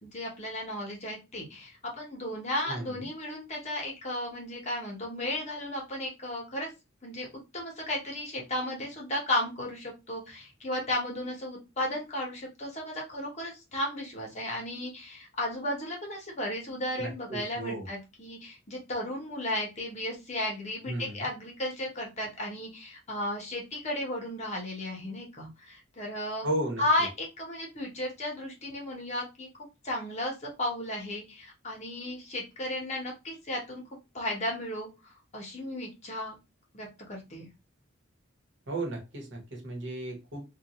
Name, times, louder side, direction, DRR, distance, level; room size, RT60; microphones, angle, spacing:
voice 1, 0.0-6.7 7.0-7.3 7.5-26.5 26.8-29.5 29.8-33.8 34.1-36.4 36.7-37.5, left 1 dB, 35° left, 0.9 m, -34 dB
voice 2, 2.6-3.1 17.0-17.9 20.9-21.3 26.4-27.1 38.7-40.4, right 1 dB, 70° right, 1.0 m, -35 dB
2.5 x 2.3 x 2.9 m
head